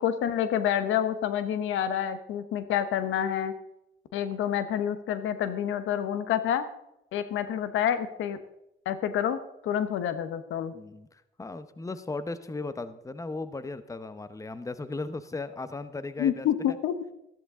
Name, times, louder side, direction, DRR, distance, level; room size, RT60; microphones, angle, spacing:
voice 1, 0.0-3.5 4.1-6.6 7.1-8.4 8.8-10.7 16.2-16.9, left 9 dB, 85° left, 12 dB, 1.1 m, -28 dB
voice 2, 10.7-16.8, left 3 dB, 15° left, 13 dB, 0.9 m, -37 dB
14.0 x 12.5 x 3.7 m, 0.86 s
cardioid pair, 90°, 20 cm